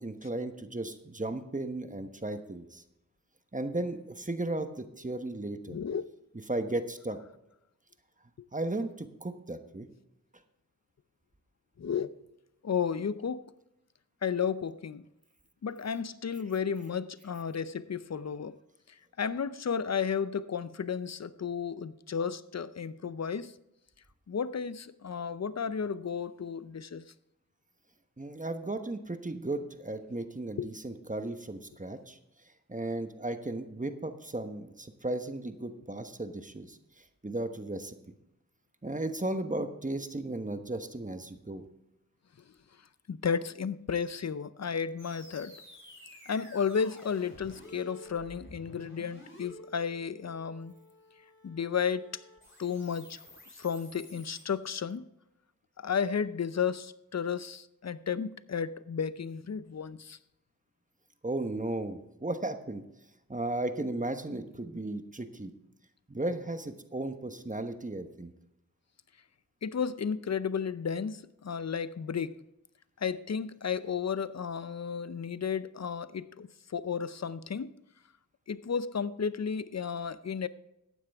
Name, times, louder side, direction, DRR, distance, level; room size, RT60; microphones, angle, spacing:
voice 1, 0.0-2.8 3.5-5.8 6.5-7.2 8.5-9.9 28.2-32.2 32.7-36.8 37.2-37.9 38.8-41.7 61.2-62.8 63.3-65.5 66.1-68.3, right 2 dB, 25° right, 1.1 m, -35 dB
voice 2, 5.7-6.1 11.8-12.1 12.6-13.4 14.2-15.0 15.6-18.6 18.9-23.5 24.3-27.0 30.6-30.7 43.1-45.5 46.3-50.7 51.4-52.2 52.6-53.2 53.6-55.0 55.8-60.2 69.6-72.4 73.0-77.7 78.5-80.5, left 6 dB, 50° left, 0.6 m, -33 dB
sound 1, 45.0-54.4, left 1 dB, 35° left, 3.8 m, -52 dB
14.5 x 9.7 x 3.5 m
cardioid pair, 45°, 34 cm